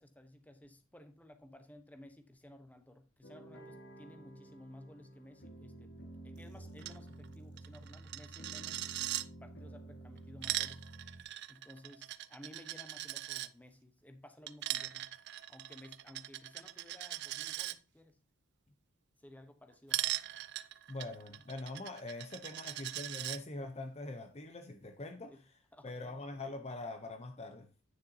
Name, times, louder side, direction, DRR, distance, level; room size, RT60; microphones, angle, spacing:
voice 1, 0.0-5.9 6.2-8.9 9.4-10.9 11.5-15.1 15.5-18.2 19.2-20.2 22.7-22.8 25.3-25.4 25.7-26.2, left 1 dB, 5° left, 1.0 m, -56 dB
sound 1, 3.2-11.2, right 1 dB, 55° left, 1.8 m, -51 dB
Coin (dropping), 6.8-7.0 7.2-7.3 7.6-9.2 10.2-13.5 14.5-17.7 19.9-23.4, right 14 dB, 55° right, 0.4 m, -40 dB
voice 2, 20.9-25.4 25.8-27.7, left 2 dB, 30° left, 0.7 m, -43 dB
9.5 x 6.8 x 2.8 m
head